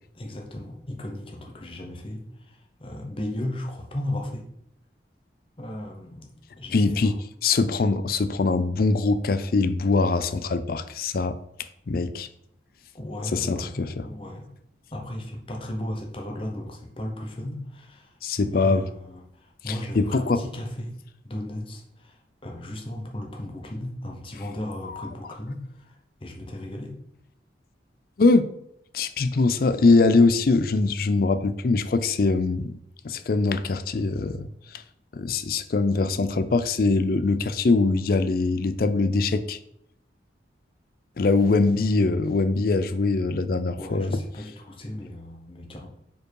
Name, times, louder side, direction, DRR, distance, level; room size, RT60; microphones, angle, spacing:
voice 1, 0.1-4.5 5.6-6.3 6.6-7.2 12.9-14.5 14.9-21.0 21.2-25.9 26.2-27.0 43.8-45.9, left 1 dB, 30° left, 1.0 m, -36 dB
voice 2, 6.7-7.2 7.4-11.4 11.9-12.3 13.3-14.1 18.2-18.9 19.7-20.4 24.8-25.1 28.2-28.5 28.9-32.8 33.0-34.8 35.1-39.6 41.2-44.2, left 3 dB, 50° left, 0.4 m, -22 dB
5.1 x 4.6 x 4.7 m
head